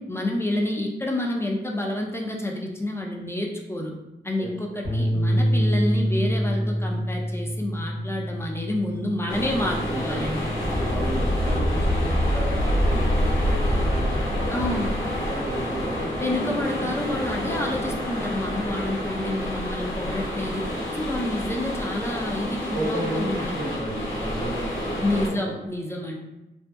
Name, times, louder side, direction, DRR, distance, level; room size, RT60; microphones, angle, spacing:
voice 1, 0.0-3.9 4.2-10.5 14.5-14.9 16.2-20.7 20.9-23.6 25.0-26.2, left 1 dB, 15° left, 0 dB, 0.4 m, -29 dB
Bass guitar, 4.8-11.1, equal, 45° left, 0.9 m, -27 dB
sound 1, 9.3-25.3, equal, 85° left, 0.7 m, -29 dB
voice 2, 9.9-10.3 10.8-16.6 22.7-25.5, right 1 dB, 85° right, -3 dB, 0.7 m, -34 dB
sound 2, 10.6-15.5, equal, 40° right, 0.7 m, -25 dB
2.6 x 2.1 x 2.2 m, 0.98 s
cardioid pair, 55°, 20 cm